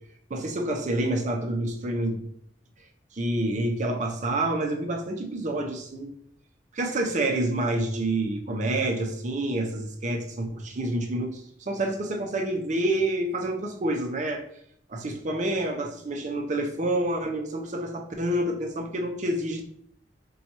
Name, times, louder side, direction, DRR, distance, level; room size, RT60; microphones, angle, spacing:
voice 1, 0.3-2.2 3.1-6.1 6.7-14.4 14.9-19.6, right 1 dB, 45° right, 3 dB, 0.5 m, -28 dB
4.1 x 2.3 x 2.9 m, 0.67 s
head